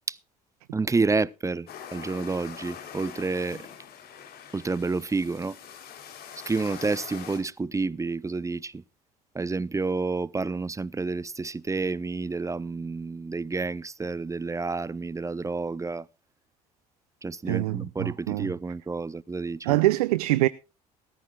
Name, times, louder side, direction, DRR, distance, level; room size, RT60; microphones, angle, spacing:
voice 1, 0.7-3.6 4.5-5.6 6.5-8.8 9.3-16.1 17.2-19.8, right 3 dB, 15° right, 0.6 m, -29 dB
sound 1, 1.7-7.4, left 8 dB, 55° left, 3.4 m, -43 dB
voice 2, 17.5-18.5 19.6-20.5, right 18 dB, 75° right, 0.6 m, -24 dB
18.0 x 14.5 x 2.3 m
hypercardioid pair, 55°, 19 cm